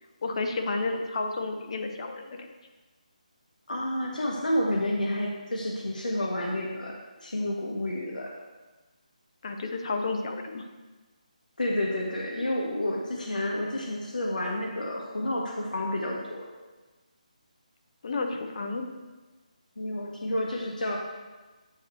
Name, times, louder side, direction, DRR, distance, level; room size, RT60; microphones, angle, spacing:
voice 1, 0.2-2.5 9.4-10.6 18.0-18.8, left 3 dB, 45° left, 5 dB, 0.7 m, -31 dB
voice 2, 3.7-8.3 11.6-16.4 19.8-21.0, left 1 dB, 80° left, -1 dB, 1.0 m, -30 dB
8.0 x 2.9 x 4.4 m, 1.2 s
figure-of-eight pair, 160°, 4 cm